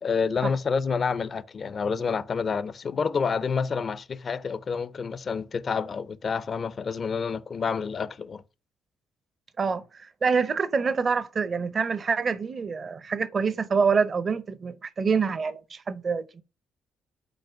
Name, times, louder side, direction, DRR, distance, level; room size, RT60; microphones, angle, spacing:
voice 1, 0.0-8.4, left 5 dB, 50° left, 0.5 m, -28 dB
voice 2, 9.6-16.4, right 5 dB, 45° right, 0.8 m, -26 dB
5.2 x 4.3 x 5.9 m
supercardioid pair, 55°, 0 cm